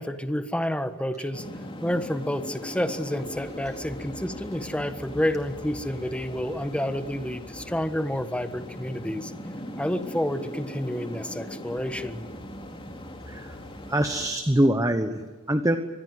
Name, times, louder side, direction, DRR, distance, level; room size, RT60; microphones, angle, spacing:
voice 1, 0.0-1.4 1.8-9.3 9.8-12.2, left 1 dB, 5° left, 9 dB, 1.4 m, -29 dB
sound 1, 1.3-14.3, left 1 dB, 25° left, 3.1 m, -39 dB
voice 2, 13.3-13.6 13.9-15.8, right 1 dB, 15° right, 8 dB, 1.1 m, -24 dB
25.0 x 20.5 x 8.0 m, 1.3 s
head